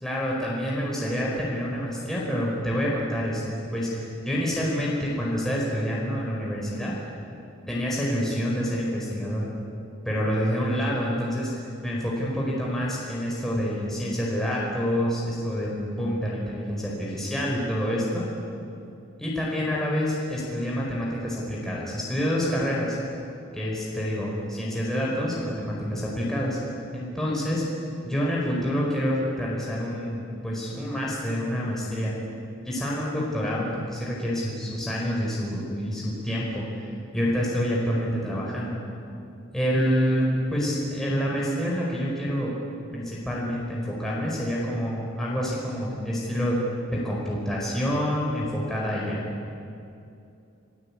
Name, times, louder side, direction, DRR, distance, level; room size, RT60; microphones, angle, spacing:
voice 1, 0.0-6.9 7.7-9.4 10.0-11.5 11.8-18.2 19.2-23.0 23.5-26.6 26.9-27.6 28.0-32.2 32.6-36.9 37.1-38.8 39.5-42.5 42.9-46.6 46.9-49.2, equal, ahead, -5 dB, 4.9 m, -27 dB
29.0 x 17.0 x 8.7 m, 2.6 s
head